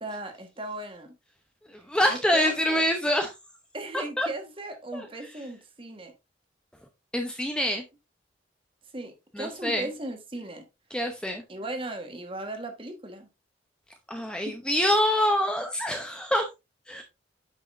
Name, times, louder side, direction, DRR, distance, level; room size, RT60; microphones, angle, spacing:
voice 1, 0.0-1.1 2.1-2.8 3.7-6.1 8.9-10.6 11.5-13.3 14.2-14.6, right 1 dB, 30° right, 1.4 m, -37 dB
voice 2, 1.7-3.3 3.9-4.3 4.9-5.1 7.1-7.8 9.3-9.9 10.9-11.4 14.1-16.5 16.9-17.0, equal, 5° left, 0.7 m, -26 dB
8.4 x 6.2 x 2.6 m
head